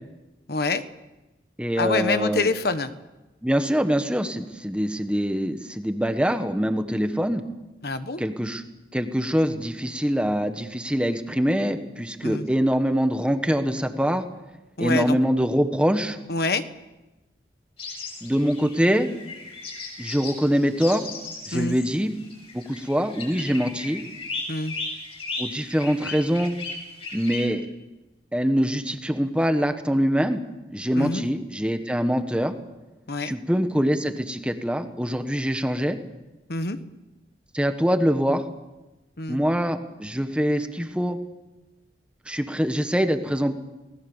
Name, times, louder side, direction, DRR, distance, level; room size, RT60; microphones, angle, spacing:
voice 1, 0.5-0.8 1.8-2.9 7.8-8.2 12.2-12.5 14.8-15.2 16.3-16.6 21.5-21.8 24.5-24.7 31.0-31.2 33.1-33.3 36.5-36.8 39.2-39.4, left 3 dB, 60° left, 10 dB, 1.3 m, -26 dB
voice 2, 1.6-2.5 3.4-7.4 8.2-8.6 8.9-14.2 14.8-16.2 18.2-19.1 20.0-21.1 21.5-22.1 22.5-24.0 25.4-26.5 27.1-27.6 28.3-30.4 30.7-32.5 33.2-36.0 37.5-38.4 39.3-41.2 42.3-43.6, equal, 5° right, 7 dB, 1.4 m, -24 dB
sound 1, 17.8-27.5, left 3 dB, 35° left, 7.0 m, -36 dB
29.5 x 19.0 x 7.2 m, 1.1 s
head